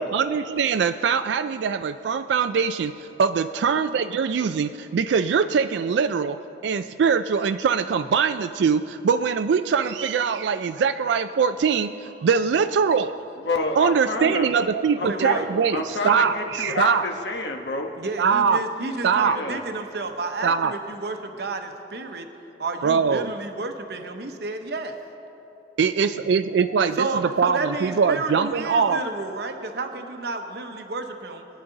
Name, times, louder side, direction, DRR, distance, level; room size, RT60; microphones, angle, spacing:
voice 1, 0.0-2.9 3.2-6.4 6.6-13.1 13.8-17.1 18.2-18.6 19.0-19.4 20.4-20.7 22.8-23.3 25.8-27.1 27.4-29.0, right 6 dB, 80° right, 10 dB, 0.3 m, -22 dB
voice 2, 13.4-14.5 15.0-15.4 15.7-17.9 19.2-19.6, left 3 dB, 75° left, 3 dB, 1.1 m, -28 dB
voice 3, 15.0-15.5 18.0-22.3 22.6-24.9 26.9-31.4, right 3 dB, 65° right, 5 dB, 0.9 m, -31 dB
22.0 x 9.4 x 3.9 m, 2.9 s
head